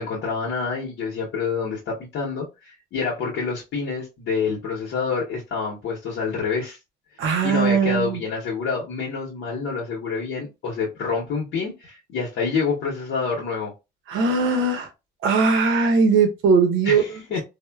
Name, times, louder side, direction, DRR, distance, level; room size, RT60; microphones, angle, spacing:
voice 1, 0.0-6.8 7.4-13.7 16.8-17.4, left 5 dB, 80° left, 0.8 m, -27 dB
voice 2, 7.2-8.2 14.1-14.9 15.2-17.0, right 4 dB, 85° right, 0.8 m, -19 dB
3.5 x 2.1 x 2.2 m
cardioid pair, 90°, 20 cm